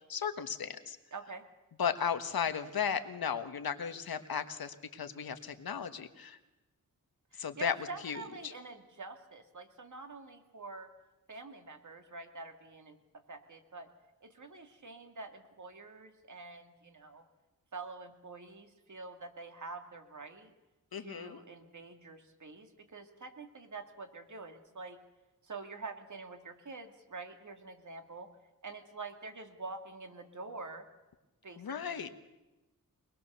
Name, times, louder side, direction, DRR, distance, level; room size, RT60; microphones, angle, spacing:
voice 1, 0.1-1.0 1.8-6.4 7.4-7.7 8.0-8.5 20.9-21.4 31.6-32.1, left 7 dB, 80° left, 9 dB, 1.5 m, -35 dB
voice 2, 1.1-1.4 7.3-10.9 11.3-13.9 14.2-17.2 17.7-20.5 20.9-25.0 25.4-28.3 28.6-30.8 31.4-32.1, right 3 dB, 55° right, 6 dB, 2.4 m, -46 dB
23.5 x 21.0 x 6.8 m, 1.1 s
wide cardioid pair, 75°, 36 cm